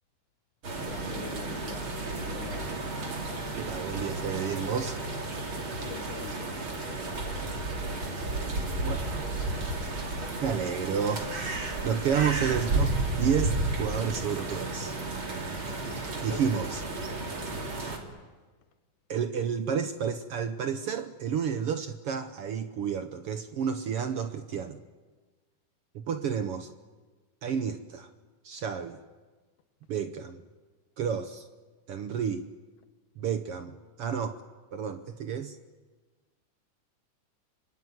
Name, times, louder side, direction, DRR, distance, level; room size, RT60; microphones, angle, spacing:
sound 1, 0.6-18.0, right 2 dB, 40° right, 3.9 m, -32 dB
voice 1, 0.8-1.9 2.2-2.7 5.8-6.5 6.8-7.6 8.3-9.1 12.1-12.2 16.3-16.4 17.5-17.6, left 9 dB, 75° left, 2.8 m, -45 dB
voice 2, 3.6-5.0 8.8-9.2 10.4-11.3 11.8-14.9 16.2-16.8 19.1-24.8 25.9-26.7 27.4-28.1 28.4-29.0 29.9-30.4 31.0-31.5 31.9-32.5 33.2-34.4 34.7-35.6, right 7 dB, 65° right, 1.6 m, -31 dB
25.5 x 24.0 x 9.4 m
omnidirectional pair, 3.6 m